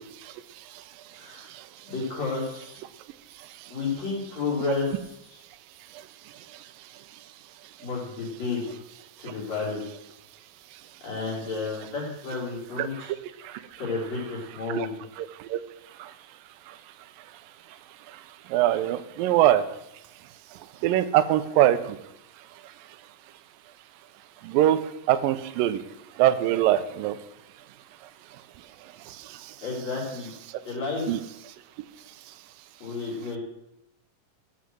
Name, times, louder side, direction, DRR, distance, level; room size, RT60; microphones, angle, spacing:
voice 1, 1.1-1.5 1.9-2.8 3.7-5.4 7.8-8.7 9.2-9.8 11.0-13.1 13.8-15.0 29.6-30.3 30.6-31.2 32.8-33.4, left 4 dB, 50° left, -5 dB, 4.4 m, -31 dB
voice 2, 15.2-15.6 18.5-19.6 20.8-22.0 24.4-24.8 25.1-25.8 26.2-27.2 31.1-31.2, right 12 dB, 90° right, 13 dB, 2.4 m, -22 dB
14.0 x 6.4 x 7.6 m, 0.83 s
omnidirectional pair, 4.0 m